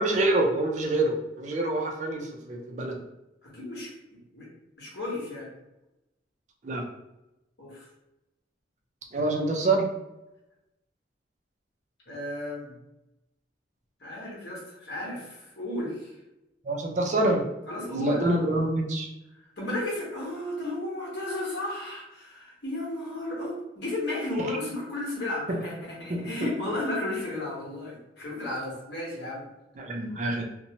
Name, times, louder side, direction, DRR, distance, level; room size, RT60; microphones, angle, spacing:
voice 1, 0.0-3.0 6.6-6.8 9.1-9.9 16.7-17.4 17.9-19.1 25.5-25.6 26.1-26.2 29.8-30.5, right 2 dB, 40° right, 0 dB, 0.4 m, -26 dB
voice 2, 3.4-4.5 4.8-5.5 7.6-7.9 12.1-12.7 14.0-16.1 17.7-18.3 19.4-29.4, left 1 dB, 60° left, -5 dB, 1.1 m, -34 dB
2.7 x 2.1 x 2.8 m, 0.93 s
head